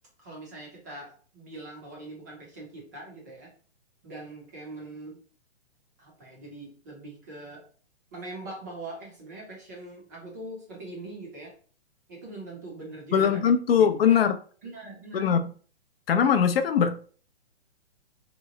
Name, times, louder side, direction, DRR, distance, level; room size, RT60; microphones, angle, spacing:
voice 1, 0.2-3.5 4.0-5.2 6.0-7.6 8.1-11.5 12.1-14.2 14.6-15.3, right 2 dB, 15° right, 0.5 m, -42 dB
voice 2, 13.1-14.4 15.1-15.5 16.1-16.9, left 7 dB, 60° left, 0.5 m, -21 dB
2.9 x 2.0 x 3.7 m
hypercardioid pair, 160°, 34 cm